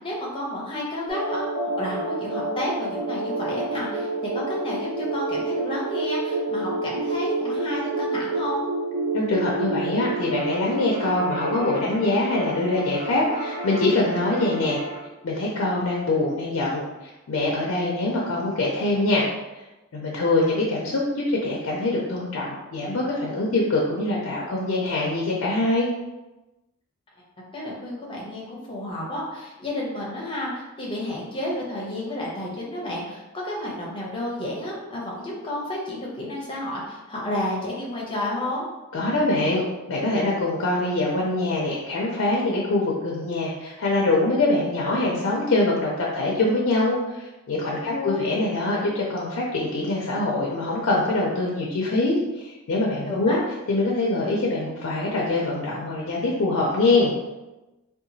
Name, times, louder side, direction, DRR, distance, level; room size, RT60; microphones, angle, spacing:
voice 1, 0.0-1.5 1.8-8.6 27.5-38.7 47.8-48.2 53.1-53.4, left 1 dB, 25° left, -4 dB, 0.6 m, -31 dB
sound 1, 1.1-15.0, right 2 dB, 40° right, 1.1 m, -29 dB
voice 2, 9.1-14.8 15.2-19.3 19.5-19.6 19.9-25.9 38.9-53.4 53.7-57.1, left 2 dB, 70° left, -3 dB, 0.4 m, -24 dB
2.8 x 2.3 x 2.6 m, 1.0 s
head